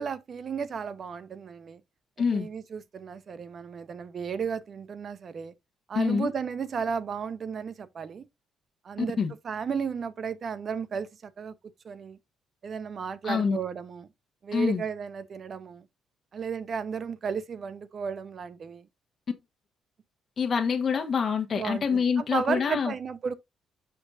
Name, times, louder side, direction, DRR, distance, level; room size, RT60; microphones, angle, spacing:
voice 1, 0.0-1.8 2.3-5.5 5.9-8.3 8.8-9.2 9.4-11.5 11.8-12.2 12.6-14.1 14.4-15.8 16.3-18.9 21.6-23.3, right 6 dB, 50° right, 0.8 m, -34 dB
voice 2, 2.2-2.5 5.9-6.3 9.2-9.3 13.2-13.6 14.5-14.8 20.4-22.9, left 6 dB, 45° left, 1.2 m, -26 dB
6.9 x 6.1 x 2.5 m
cardioid pair, 90°, 0 cm